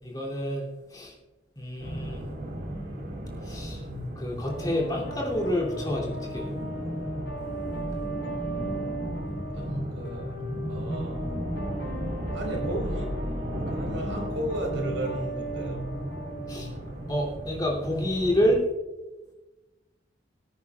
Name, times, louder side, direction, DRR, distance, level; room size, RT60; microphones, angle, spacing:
voice 1, 0.0-1.1 1.5-2.3 3.4-3.8 4.2-6.5 16.5-16.7 17.1-18.6, equal, 20° left, -3 dB, 2.9 m, -28 dB
sound 1, 1.8-18.6, right 1 dB, 55° right, 2.1 m, -35 dB
sound 2, 4.5-17.5, right 1 dB, 65° left, 4.0 m, -38 dB
voice 2, 9.5-10.4 10.7-11.3 12.3-13.1 13.7-15.8, right 1 dB, 85° right, 0 dB, 4.7 m, -34 dB
24.5 x 9.6 x 2.4 m, 1.1 s
head